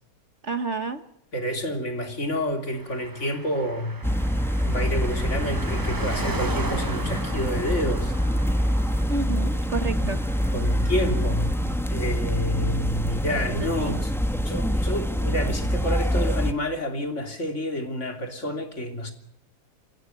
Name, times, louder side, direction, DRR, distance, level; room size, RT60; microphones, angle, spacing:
voice 1, 0.4-1.0 9.1-10.2 13.6-14.0, right 4 dB, 45° right, 1.4 m, -30 dB
voice 2, 1.3-4.0 4.6-8.1 10.0-10.1 10.5-11.5 11.9-14.1 14.4-19.1, equal, 45° left, 3.5 m, -29 dB
Car passing by, 2.7-14.5 14.8-14.9, right 2 dB, 20° right, 0.7 m, -38 dB
sound 1, 4.0-16.5, equal, ahead, 1.1 m, -25 dB
30.0 x 16.0 x 5.6 m
omnidirectional pair, 1.7 m